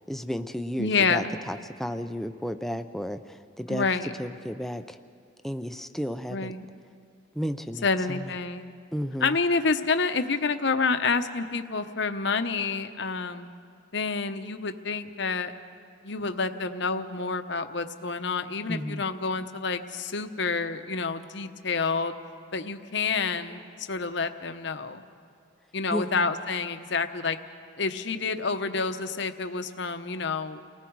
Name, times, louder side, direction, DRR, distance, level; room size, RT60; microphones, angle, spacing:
voice 1, 0.1-3.8 4.2-5.0 5.4-6.5 7.4-8.2 8.9-9.3 18.7-19.0 25.9-26.2, equal, ahead, 8 dB, 0.5 m, -33 dB
voice 2, 0.8-1.4 3.7-4.1 6.3-6.7 7.8-8.7 9.2-13.5 13.9-15.5 16.0-22.1 22.5-25.0 25.7-27.4 27.8-30.6, left 4 dB, 60° left, 9 dB, 0.9 m, -28 dB
29.5 x 19.0 x 4.7 m, 2.3 s
head